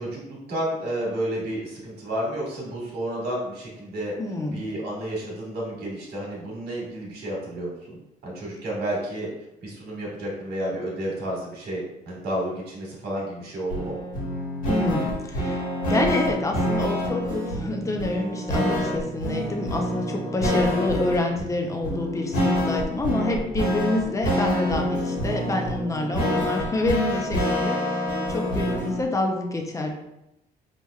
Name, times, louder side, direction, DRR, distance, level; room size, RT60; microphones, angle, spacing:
voice 1, 0.0-4.1 4.5-8.0 8.2-9.3 9.6-14.0, right 1 dB, 70° right, -4 dB, 1.5 m, -31 dB
voice 2, 4.2-4.6 14.7-15.6 15.9-29.9, left 2 dB, 20° left, 2 dB, 0.6 m, -27 dB
sound 1, 13.7-29.0, equal, 55° left, 1.5 m, -27 dB
4.7 x 2.9 x 2.3 m, 0.87 s
cardioid pair, 110°, 17 cm